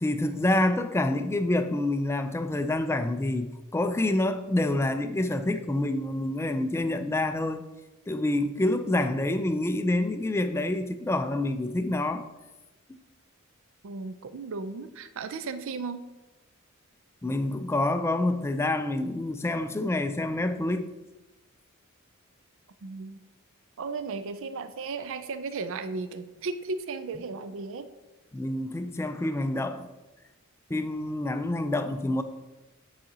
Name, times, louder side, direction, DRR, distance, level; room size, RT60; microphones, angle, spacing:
voice 1, 0.0-7.6 8.1-12.3 17.2-20.9 28.3-29.9 30.7-32.2, left 1 dB, 10° left, 0.3 m, -27 dB
voice 2, 13.8-16.0 22.8-23.2 23.8-27.9, right 4 dB, 60° right, 0.4 m, -35 dB
9.1 x 4.9 x 2.8 m
head